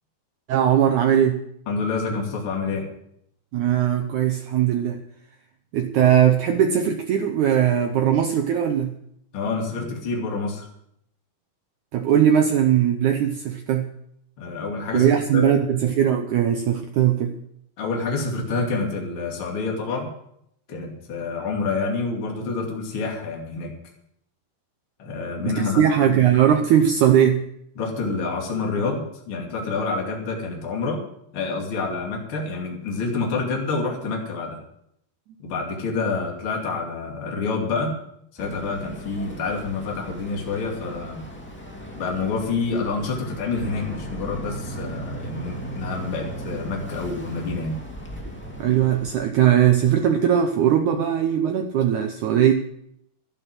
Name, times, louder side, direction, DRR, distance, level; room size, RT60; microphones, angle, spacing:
voice 1, 0.5-1.4 3.5-5.0 5.7-8.9 11.9-13.9 14.9-17.3 25.5-27.4 48.6-52.5, right 9 dB, 85° right, 6 dB, 1.7 m, -19 dB
voice 2, 1.7-2.8 9.3-10.7 14.4-15.6 17.8-20.1 20.7-23.7 25.0-26.2 27.8-31.0 31.3-34.6 35.4-38.0 38.3-41.2 41.9-47.8, left 4 dB, 35° left, 0 dB, 3.0 m, -28 dB
Boat Water vehicle, 38.4-49.2, right 1 dB, 5° left, 1.3 m, -37 dB
12.0 x 11.5 x 6.2 m, 0.73 s
omnidirectional pair, 4.6 m